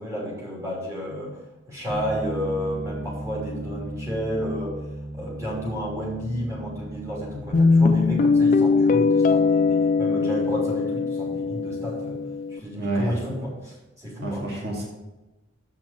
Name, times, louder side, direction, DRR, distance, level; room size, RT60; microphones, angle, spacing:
voice 1, 0.0-1.4 1.7-4.8 5.1-12.2 12.5-14.4, equal, 15° right, -4 dB, 3.0 m, -31 dB
Bass guitar, 1.9-8.1, right 1 dB, 15° left, 0.7 m, -36 dB
Guitar, 7.5-12.6, left 4 dB, 40° left, 0.3 m, -21 dB
voice 2, 12.8-13.3 14.2-14.8, right 2 dB, 50° right, -3 dB, 2.3 m, -28 dB
7.5 x 5.9 x 7.4 m, 1.1 s
head